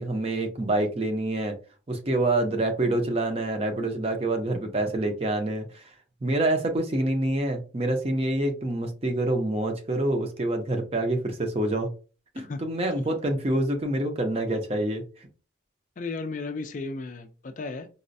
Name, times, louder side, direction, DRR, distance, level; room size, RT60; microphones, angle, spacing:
voice 1, 0.0-1.5 1.9-5.9 6.2-11.9 12.3-15.3, right 1 dB, 30° right, 0.6 m, -26 dB
voice 2, 16.0-17.9, left 3 dB, 40° left, 0.3 m, -34 dB
4.0 x 2.1 x 2.6 m
head